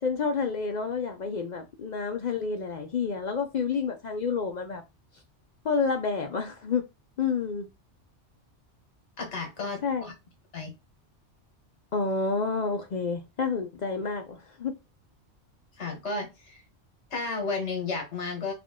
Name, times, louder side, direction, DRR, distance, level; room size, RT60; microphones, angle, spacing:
voice 1, 0.0-4.8 5.6-6.8 7.2-7.7 9.8-10.1 11.9-14.7, left 5 dB, 55° left, 0.5 m, -29 dB
voice 2, 9.2-10.1 10.5-10.7 15.8-16.6 17.1-18.5, left 3 dB, 75° left, 1.5 m, -33 dB
3.6 x 2.4 x 3.6 m
omnidirectional pair, 1.2 m